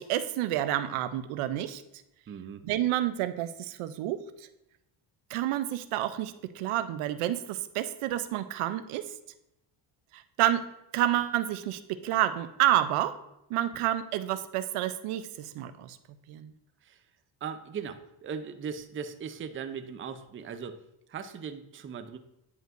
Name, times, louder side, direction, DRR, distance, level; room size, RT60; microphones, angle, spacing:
voice 1, 0.0-1.8 2.6-4.2 5.3-9.0 10.1-10.6 10.9-13.1 13.5-16.0 16.3-16.5, right 13 dB, 90° right, 11 dB, 0.6 m, -29 dB
voice 2, 2.3-2.6 13.7-13.8 16.8-17.0 17.4-20.8 21.1-22.2, right 6 dB, 25° right, 9 dB, 0.4 m, -39 dB
9.6 x 5.2 x 2.5 m, 0.83 s
cardioid pair, 110°, 49 cm